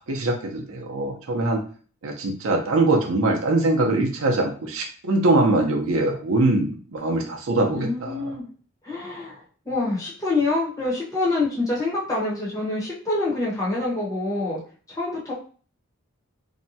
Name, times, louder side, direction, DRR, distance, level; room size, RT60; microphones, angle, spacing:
voice 1, 0.1-1.6 2.0-8.3, right 2 dB, 80° right, 2 dB, 0.6 m, -22 dB
voice 2, 7.7-8.4 8.8-14.6 14.9-15.3, left 2 dB, 15° left, -7 dB, 1.0 m, -26 dB
2.7 x 2.2 x 2.7 m, 0.41 s
head